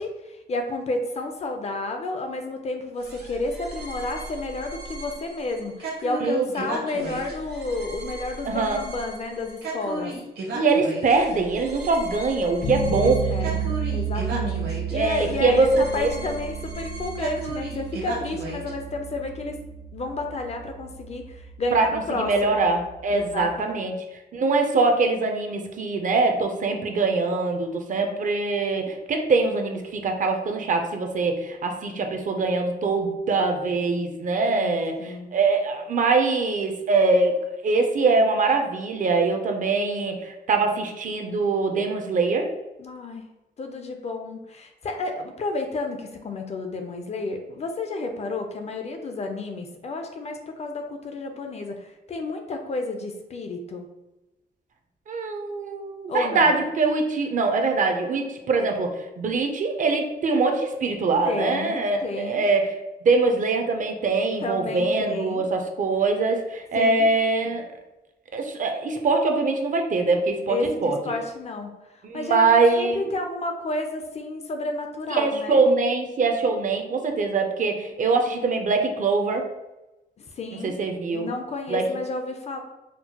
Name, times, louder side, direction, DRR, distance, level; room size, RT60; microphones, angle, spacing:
voice 1, 0.0-10.2 12.9-19.6 19.9-22.3 23.1-23.9 34.5-35.3 42.8-43.3 43.6-53.9 56.1-56.6 61.2-62.5 64.4-65.5 66.7-67.1 70.5-71.7 72.1-75.6 80.4-80.8 81.1-82.6, left 2 dB, 40° left, 4 dB, 0.4 m, -31 dB
sound 1, 3.0-18.7, right 2 dB, 70° right, 0.9 m, -36 dB
voice 2, 6.2-6.8 8.4-8.8 10.5-13.2 14.3-14.6 14.9-16.1 21.7-24.0 24.3-42.5 55.1-62.8 63.0-67.7 68.3-71.0 72.0-73.1 75.1-79.4 80.6-81.3 81.7-82.0, right 3 dB, 50° right, 4 dB, 0.4 m, -23 dB
sound 2, 12.6-23.5, right 6 dB, 80° left, 1.4 m, -32 dB
4.4 x 2.1 x 2.8 m, 0.99 s
wide cardioid pair, 180°, 18 cm